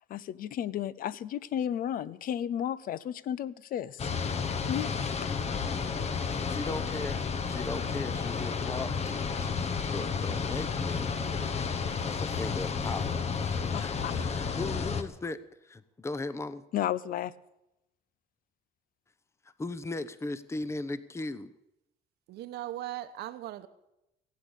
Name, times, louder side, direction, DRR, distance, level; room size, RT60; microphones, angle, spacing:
voice 1, 0.1-4.1 4.7-4.9 5.2-5.3 13.7-14.1 16.7-17.3, left 10 dB, 55° left, 0.7 m, -33 dB
sound 1, 4.0-15.0, left 5 dB, 40° left, 1.1 m, -31 dB
voice 2, 6.5-7.2 7.4-11.4 12.0-15.4 15.6-16.6 19.6-21.5, left 2 dB, 15° left, 0.8 m, -38 dB
voice 3, 22.3-23.7, right 13 dB, 75° right, 1.0 m, -38 dB
16.5 x 8.5 x 8.2 m
cardioid pair, 110°, 17 cm